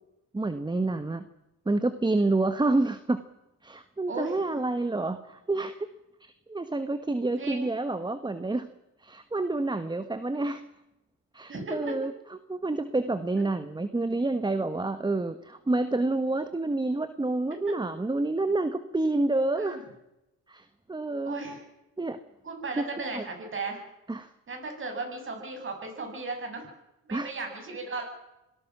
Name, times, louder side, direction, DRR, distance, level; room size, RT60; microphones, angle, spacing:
voice 1, 0.3-1.3 1.7-3.2 3.6-5.9 6.2-8.7 9.0-10.6 11.3-19.8 20.5-21.4 22.0-22.2 22.8-23.2 24.1-24.3 27.1-27.3 27.9-28.0, right 2 dB, 15° right, 11 dB, 1.3 m, -28 dB
voice 2, 4.1-4.4 7.4-7.6 11.5-12.0 17.7-17.8 19.6-19.8 21.2-21.6 22.4-23.8 24.5-26.7 27.1-28.0, right 3 dB, 40° right, 4 dB, 7.8 m, -36 dB
25.0 x 18.5 x 6.1 m, 0.91 s
cardioid pair, 90°, 30 cm